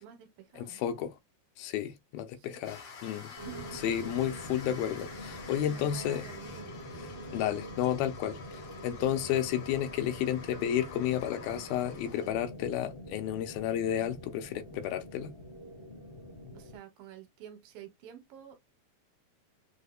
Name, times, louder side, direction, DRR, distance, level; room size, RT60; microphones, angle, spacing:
voice 1, 0.0-0.8 2.3-2.6 3.5-3.8 5.7-6.7 16.5-18.6, right 10 dB, 75° right, 2.6 m, -50 dB
voice 2, 0.6-1.1 1.6-3.3 3.8-6.3 7.3-15.3, left 10 dB, 85° left, 2.6 m, -32 dB
sound 1, 2.6-12.3, left 4 dB, 65° left, 1.1 m, -48 dB
sound 2, 3.4-16.8, equal, 25° right, 0.6 m, -45 dB
6.6 x 2.7 x 2.3 m
omnidirectional pair, 4.3 m